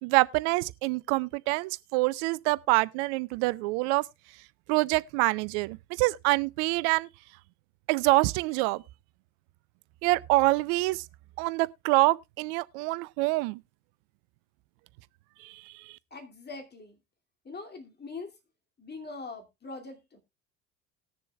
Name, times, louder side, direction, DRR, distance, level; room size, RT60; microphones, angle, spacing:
voice 1, 0.0-4.0 4.7-7.1 7.9-8.8 10.0-11.0 11.4-13.6 15.4-15.5, right 22 dB, 55° right, 0.6 m, -26 dB
voice 2, 16.1-17.0 17.4-18.3 18.8-20.2, left 3 dB, 25° left, 2.5 m, -42 dB
19.5 x 6.9 x 2.3 m
figure-of-eight pair, 65°, 42 cm